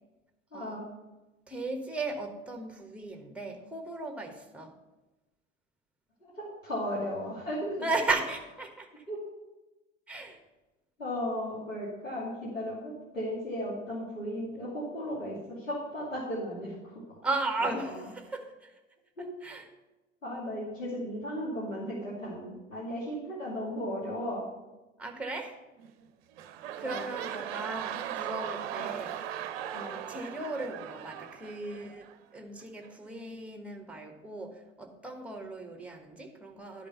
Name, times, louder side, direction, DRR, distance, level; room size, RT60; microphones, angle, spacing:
voice 1, 0.5-0.9 6.2-7.8 9.1-9.2 11.0-17.2 17.6-18.0 19.2-19.3 20.2-24.4 26.8-27.1 28.8-28.9 29.7-30.0, equal, 85° left, -8 dB, 2.5 m, -36 dB
voice 2, 1.5-4.7 7.8-9.0 10.1-10.4 17.2-18.7 19.2-19.7 25.0-25.6 26.8-29.2 30.1-32.1 32.3-36.9, right 2 dB, 5° right, 4 dB, 1.2 m, -36 dB
sound 1, 25.8-26.1 26.3-32.2 32.8-32.9, right 10 dB, 50° right, 0.7 m, -38 dB
12.0 x 5.2 x 5.5 m, 1.1 s
figure-of-eight pair, 80°, 38 cm